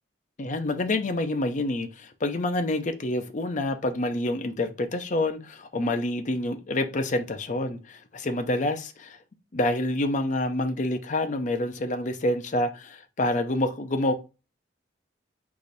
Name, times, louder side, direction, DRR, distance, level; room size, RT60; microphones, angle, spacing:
voice 1, 0.4-9.2 9.5-14.1, left 1 dB, 40° left, 0.5 m, -27 dB
4.8 x 4.0 x 2.6 m
head